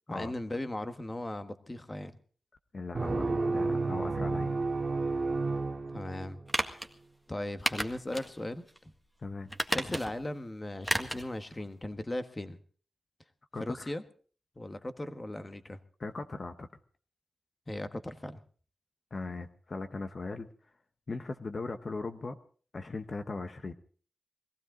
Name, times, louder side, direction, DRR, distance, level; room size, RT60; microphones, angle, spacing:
voice 1, 0.1-2.2 5.9-6.4 7.3-8.6 9.7-12.6 13.6-14.0 14.6-15.8 17.7-18.4, left 1 dB, 25° left, 9 dB, 1.4 m, -37 dB
voice 2, 2.7-4.5 9.2-9.5 13.5-13.9 16.0-16.7 19.1-20.5 21.1-22.4 22.7-23.7, left 3 dB, 50° left, 7 dB, 1.1 m, -38 dB
sound 1, 2.9-6.5, right 3 dB, 45° right, 1.9 m, -31 dB
sound 2, 6.5-6.9 7.7-8.3 8.7-8.8 9.5-10.3 10.8-11.3 11.6-11.7, equal, 5° left, 1.7 m, -32 dB
21.5 x 16.0 x 3.9 m, 0.42 s
cardioid pair, 65°, 0 cm